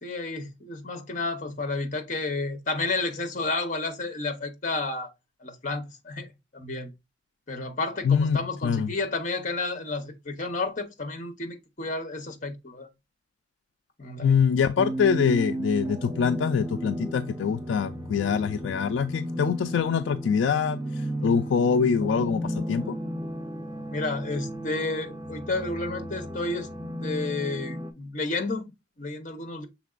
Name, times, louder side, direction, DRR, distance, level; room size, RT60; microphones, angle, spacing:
voice 1, 0.0-5.1 5.4-6.3 6.5-6.9 7.5-12.9 14.0-14.4 23.9-26.7 27.0-29.7, left 3 dB, 40° left, 0.9 m, -31 dB
voice 2, 8.0-8.9 14.2-23.0, left 6 dB, 70° left, 0.3 m, -24 dB
sound 1, 14.8-27.9, right 1 dB, 15° right, 0.8 m, -34 dB
5.9 x 3.7 x 2.4 m
head